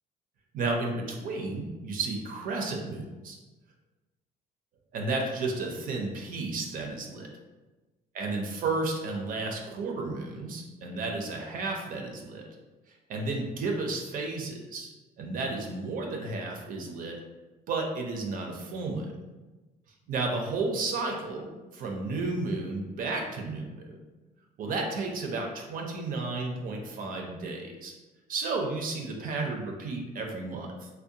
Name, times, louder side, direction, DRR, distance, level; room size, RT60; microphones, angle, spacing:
voice 1, 0.5-3.4 4.9-7.3 8.1-12.4 13.1-14.9 15.2-17.2 17.7-19.1 20.1-24.0 24.6-27.9 28.3-30.9, right 3 dB, 55° right, 2 dB, 0.4 m, -32 dB
2.6 x 2.1 x 2.6 m, 1.2 s
cardioid pair, 110°, 17 cm